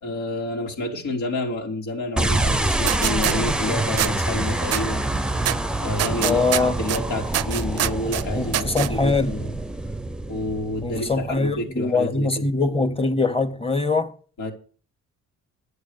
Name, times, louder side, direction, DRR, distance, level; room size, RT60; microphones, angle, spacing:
voice 1, 0.0-5.1 5.8-9.5 10.3-12.4 14.4-14.5, left 2 dB, 85° left, 3.8 m, -29 dB
sound 1, 2.2-11.6, right 2 dB, 5° right, 0.7 m, -26 dB
sound 2, 2.9-3.3 4.0-4.1 4.7-4.8 5.4-5.6 6.0-7.0 7.3-8.2 8.5-8.9, right 13 dB, 55° right, 0.5 m, -24 dB
voice 2, 6.2-6.8 8.3-9.4 10.8-14.1, left 3 dB, 20° left, 1.8 m, -23 dB
10.5 x 8.0 x 6.8 m
cardioid pair, 90°, 30 cm